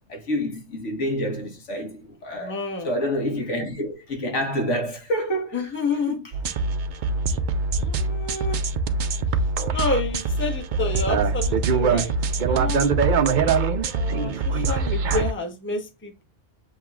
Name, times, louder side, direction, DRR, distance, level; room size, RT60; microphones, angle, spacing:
voice 1, 0.1-5.8 6.1-6.3, equal, 75° left, 1.7 m, -28 dB
voice 2, 2.4-2.9 5.5-6.2 7.8-8.6 9.7-12.1 12.4-12.8 13.9-16.2, left 3 dB, 10° left, 0.9 m, -29 dB
sound 1, 6.3-15.3, right 4 dB, 55° right, 0.6 m, -23 dB
7.6 x 2.9 x 2.3 m
omnidirectional pair, 1.3 m